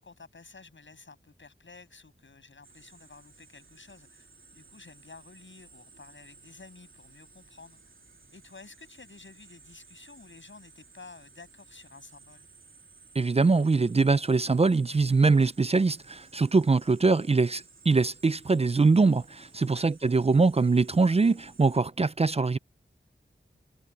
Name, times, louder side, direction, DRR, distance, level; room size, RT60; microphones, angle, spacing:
voice 1, 0.0-4.3 4.5-7.8 8.3-12.5 19.6-19.9, left 4 dB, 70° left, 7.2 m, -51 dB
sound 1, 2.6-21.8, right 4 dB, 90° right, 3.3 m, -56 dB
voice 2, 13.2-22.6, right 4 dB, 30° right, 0.4 m, -23 dB
wide cardioid pair, 80°, 20 cm